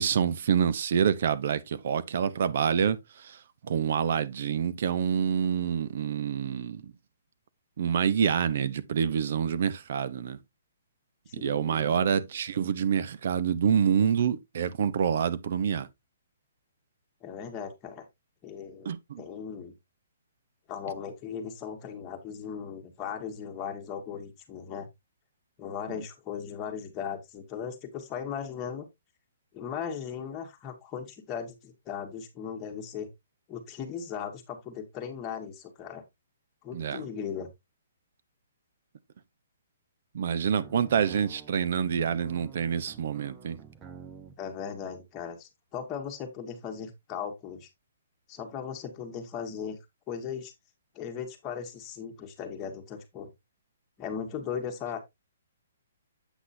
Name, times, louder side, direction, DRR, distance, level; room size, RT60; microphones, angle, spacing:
voice 1, 0.0-3.0 3.7-6.8 7.8-10.4 11.4-15.9 18.9-19.2 36.7-37.0 40.1-43.6, right 7 dB, 55° right, 0.8 m, -27 dB
voice 2, 11.3-12.1 17.2-18.1 18.4-19.7 20.7-24.9 25.6-28.9 29.5-33.1 33.5-36.0 36.6-37.5 44.4-47.7 48.3-49.8 50.1-50.5 51.0-53.3 54.0-55.0, left 7 dB, 20° left, 1.7 m, -37 dB
sound 1, 40.5-44.4, right 6 dB, 15° right, 0.9 m, -49 dB
8.1 x 6.0 x 2.7 m
hypercardioid pair, 160°, 0 cm